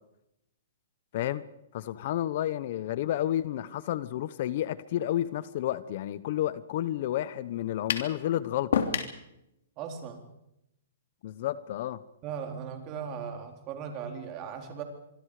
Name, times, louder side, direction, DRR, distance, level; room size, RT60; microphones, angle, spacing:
voice 1, 1.7-8.8 11.2-12.0, left 12 dB, 45° left, 16 dB, 1.0 m, -31 dB
sound 1, 7.9-8.1 8.7-9.2, left 7 dB, 65° left, 3.1 m, -27 dB
voice 2, 9.8-10.3 12.2-14.8, right 7 dB, 25° right, 4 dB, 3.8 m, -38 dB
25.5 x 24.0 x 5.0 m, 0.83 s
hypercardioid pair, 160°, 0 cm